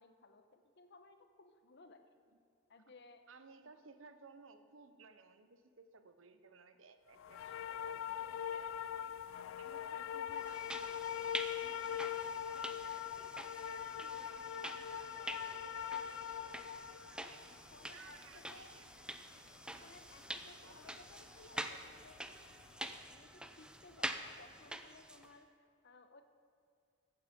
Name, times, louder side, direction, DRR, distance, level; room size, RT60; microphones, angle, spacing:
voice 1, 0.0-2.1 2.7-3.2 11.9-12.0 17.2-18.8 19.6-22.5 22.9-26.2, left 3 dB, 60° left, 7 dB, 1.1 m, -60 dB
voice 2, 3.3-9.1 9.6-13.4 13.7-16.7 17.1-17.6 17.9-18.9 20.4-21.9, right 4 dB, 75° right, 10 dB, 0.8 m, -60 dB
sound 1, 7.2-22.1 22.5-22.9, left 9 dB, 75° left, 0.3 m, -42 dB
sound 2, 10.4-25.3, right 1 dB, 5° right, 0.6 m, -47 dB
15.0 x 8.8 x 5.3 m, 2.4 s
head